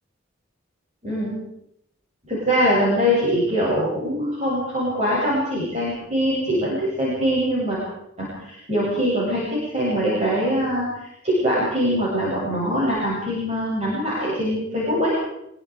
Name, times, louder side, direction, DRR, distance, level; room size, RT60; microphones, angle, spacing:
voice 1, 1.0-1.3 2.2-7.8 8.2-15.2, equal, 35° right, -7 dB, 8.0 m, -23 dB
25.5 x 22.5 x 5.0 m, 0.79 s
head